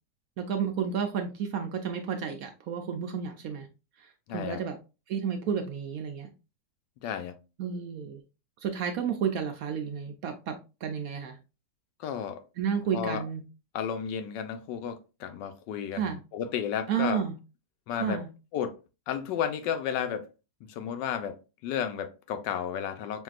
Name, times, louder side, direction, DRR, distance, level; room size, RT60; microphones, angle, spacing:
voice 1, 0.4-3.7 4.0-4.8 5.1-6.3 7.6-8.2 8.6-11.4 12.6-13.4 15.9-16.2 16.9-17.4 17.9-18.3, right 7 dB, 70° right, 0.9 m, -31 dB
voice 2, 4.3-4.6 7.0-7.4 12.0-12.4 12.9-13.2 13.7-17.2 17.9-18.2 18.5-18.7 19.1-20.3 20.7-21.4 21.6-23.2, left 8 dB, 85° left, 1.3 m, -32 dB
5.8 x 2.7 x 2.4 m
omnidirectional pair, 1.9 m